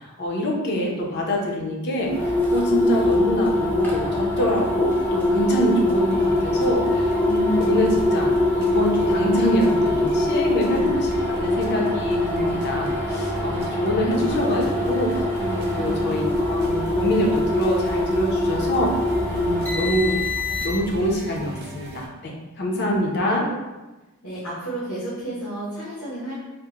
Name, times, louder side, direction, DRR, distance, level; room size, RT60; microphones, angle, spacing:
voice 1, 0.0-18.9 19.2-20.2 20.6-23.5, equal, 50° left, -1 dB, 0.6 m, -25 dB
sound 1, 2.0-21.0, left 1 dB, 10° left, 0.6 m, -23 dB
sound 2, 6.1-22.1, equal, 50° right, 0.4 m, -38 dB
voice 2, 15.7-16.2 23.2-23.6 24.2-26.3, right 2 dB, 75° left, -10 dB, 0.9 m, -33 dB
3.5 x 2.1 x 2.8 m, 1.1 s
head